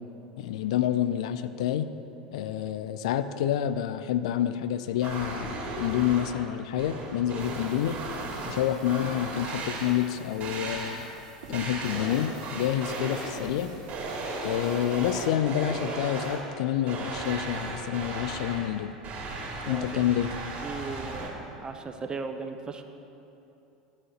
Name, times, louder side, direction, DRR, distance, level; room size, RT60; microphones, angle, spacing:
voice 1, 0.4-1.9 2.3-8.0 8.5-11.0 11.5-13.7 14.4-18.9 19.7-20.3, left 11 dB, 70° left, 12 dB, 0.4 m, -28 dB
sound 1, 5.0-6.5 6.8-10.1 10.4-11.2 11.5-13.6 13.9-16.6 16.9-21.3, right 2 dB, 40° right, 2.4 m, -36 dB
sound 2, 7.4-15.3, right 2 dB, 70° right, 2.5 m, -49 dB
voice 2, 19.6-20.0 20.6-22.8, right 4 dB, 20° right, 6 dB, 0.7 m, -37 dB
13.0 x 5.0 x 6.5 m, 2.9 s
hypercardioid pair, 80°, 4 cm